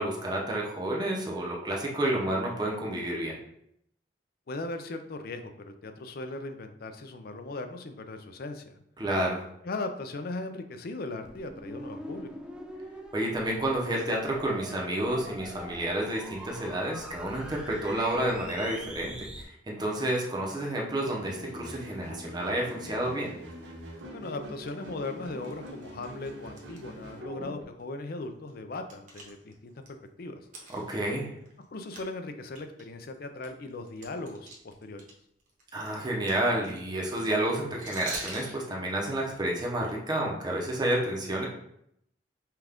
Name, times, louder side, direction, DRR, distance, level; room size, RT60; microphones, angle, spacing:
voice 1, 0.0-3.3 9.0-9.4 13.1-23.3 30.7-31.3 35.7-41.5, right 1 dB, 25° right, -2 dB, 0.8 m, -30 dB
voice 2, 4.5-8.8 9.6-12.3 24.1-29.7 30.2-30.4 31.7-35.1, left 2 dB, 55° left, 7 dB, 0.5 m, -38 dB
sound 1, 11.2-19.4, equal, 5° right, 0.4 m, -44 dB
sound 2, 21.0-27.6, right 1 dB, 85° right, 0.8 m, -44 dB
sound 3, 22.8-22.9 23.2-23.5 24.0-24.1 24.5-24.7 25.4-26.8 27.1-27.2 27.8-27.9 28.2-29.9 30.4-31.6 31.9-32.1 32.4-35.1 35.4-38.5, right 2 dB, 45° right, 1.0 m, -43 dB
5.6 x 2.4 x 3.5 m, 0.74 s
head